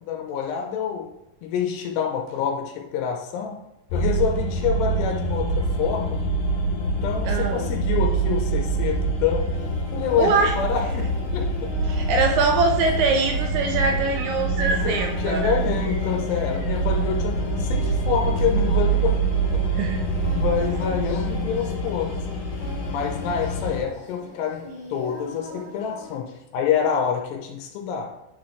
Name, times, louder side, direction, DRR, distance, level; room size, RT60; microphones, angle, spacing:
voice 1, 0.1-1.1 1.4-3.6 3.9-6.2 6.8-9.5 9.9-11.7 14.7-19.2 19.5-19.6 20.2-22.1 22.9-24.6 24.9-28.1, left 7 dB, 80° left, 1 dB, 2.7 m, -27 dB
sound 1, 3.9-23.8, right 3 dB, 55° left, 3.1 m, -25 dB
voice 2, 7.2-7.7 10.2-10.5 11.8-15.5 19.8-20.0, right 4 dB, 85° right, 3 dB, 2.3 m, -23 dB
Singing, 9.5-26.2, left 2 dB, 15° left, 1.4 m, -42 dB
sound 2, 13.2-16.8 18.4-18.5, right 3 dB, 50° right, 1.6 m, -35 dB
9.4 x 4.5 x 3.2 m, 0.92 s
omnidirectional pair, 5.1 m